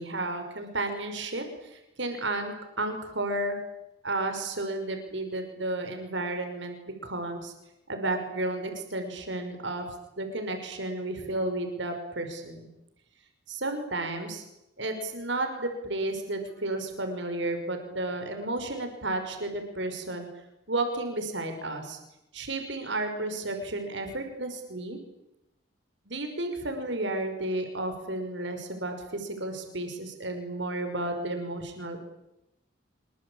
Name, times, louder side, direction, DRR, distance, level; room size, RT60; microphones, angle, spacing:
voice 1, 0.0-3.6 4.0-6.8 7.0-7.5 7.9-9.9 10.2-12.7 13.5-14.4 14.8-20.3 20.7-22.0 22.3-25.0 26.1-32.1, right 2 dB, 70° right, 5 dB, 5.6 m, -32 dB
27.0 x 24.0 x 8.8 m, 0.89 s
head